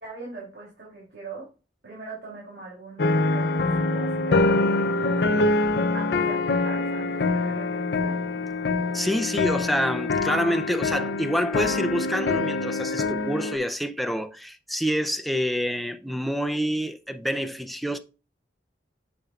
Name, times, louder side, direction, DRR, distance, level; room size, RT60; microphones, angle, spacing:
voice 1, 0.0-1.5 1.8-5.5 5.9-8.2, right 3 dB, 65° right, 2.8 m, -41 dB
sound 1, 3.0-13.6, left 3 dB, 60° left, 0.5 m, -25 dB
voice 2, 8.9-18.0, equal, ahead, 0.4 m, -27 dB
7.0 x 6.6 x 2.4 m
head